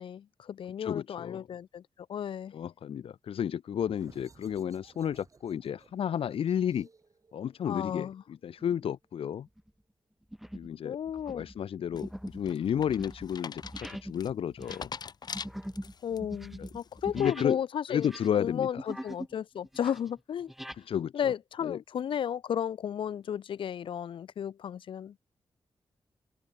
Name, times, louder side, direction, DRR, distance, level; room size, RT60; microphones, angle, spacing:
voice 1, 0.0-1.8 2.1-2.5 7.7-8.2 10.8-11.5 16.0-18.1 18.4-20.5 21.1-25.2, left 9 dB, 65° left, 0.4 m, -33 dB
voice 2, 0.8-1.5 2.5-6.9 7.3-9.5 10.5-11.0 11.3-13.6 14.0-14.9 16.6-16.7 17.1-17.6 17.9-18.9 20.9-21.3 21.6-21.8, left 9 dB, 85° left, 0.9 m, -32 dB
sound 1, 3.7-9.1, right 4 dB, 35° right, 5.2 m, -60 dB
sound 2, 8.6-9.0 9.5-9.7 10.3-10.8 11.1-17.6 17.9-19.3 19.6-20.8, equal, ahead, 3.7 m, -43 dB
sound 3, 12.0-16.2 16.6-17.1, left 6 dB, 50° left, 0.8 m, -43 dB
wide cardioid pair, 125°, 9 cm